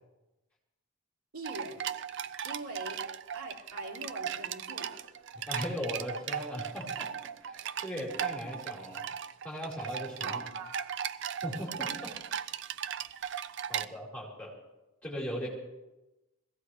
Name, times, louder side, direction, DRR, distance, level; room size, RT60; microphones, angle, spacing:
voice 1, 1.3-1.9 2.4-3.0 3.3-5.2 9.6-9.7 10.2-11.0 11.5-11.8 13.7-13.9, right 1 dB, 90° right, -3 dB, 3.8 m, -44 dB
sound 1, 1.4-13.9, right 8 dB, 55° right, 0.4 m, -37 dB
voice 2, 5.3-9.1 9.4-10.4 11.4-12.2 13.7-14.5 15.0-15.5, equal, 5° left, -5 dB, 4.6 m, -38 dB
22.0 x 17.0 x 3.3 m, 1.0 s
head